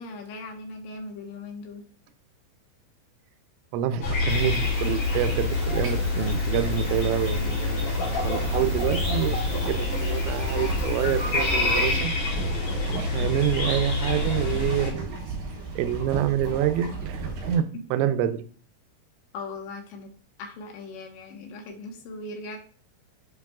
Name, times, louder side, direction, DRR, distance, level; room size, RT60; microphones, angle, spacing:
voice 1, 0.0-1.8 17.7-17.8 19.3-20.1 20.4-22.6, left 3 dB, 80° left, 2 dB, 3.5 m, -39 dB
voice 2, 3.7-8.0 8.2-9.4 9.7-12.1 12.9-15.1 15.8-18.4, right 10 dB, 85° right, 10 dB, 2.9 m, -27 dB
sound 1, 4.0-14.9, left 3 dB, 50° left, 3.8 m, -27 dB
sound 2, 4.3-12.0, right 1 dB, 35° right, 2.7 m, -37 dB
sound 3, 8.1-17.6, right 3 dB, 55° right, 4.3 m, -34 dB
8.9 x 5.4 x 2.3 m, 0.43 s
omnidirectional pair, 5.1 m